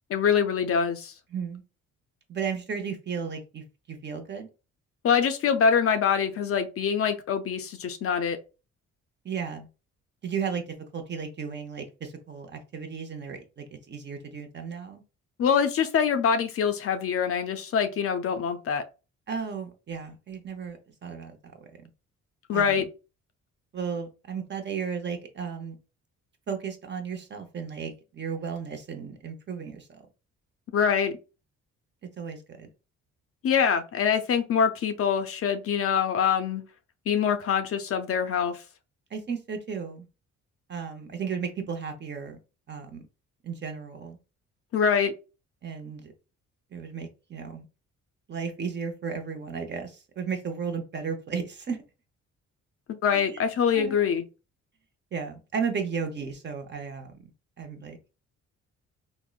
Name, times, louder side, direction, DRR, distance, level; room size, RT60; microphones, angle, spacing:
voice 1, 0.1-1.1 5.0-8.4 15.4-18.8 22.5-22.9 30.7-31.2 33.4-36.6 37.1-38.6 44.7-45.1 52.9-54.2, left 7 dB, 50° left, 0.5 m, -24 dB
voice 2, 1.3-1.6 2.3-4.5 9.2-9.7 10.2-15.0 19.3-21.9 22.5-22.9 23.7-25.8 26.5-30.0 32.2-32.7 39.1-40.1 40.7-42.4 42.7-43.0 43.4-44.2 45.6-46.1 46.7-47.7 48.3-51.8 53.1-53.4 53.7-54.0 55.1-57.3 57.6-58.0, right 6 dB, 35° right, 0.7 m, -34 dB
3.6 x 2.1 x 2.3 m
cardioid pair, 90°, 30 cm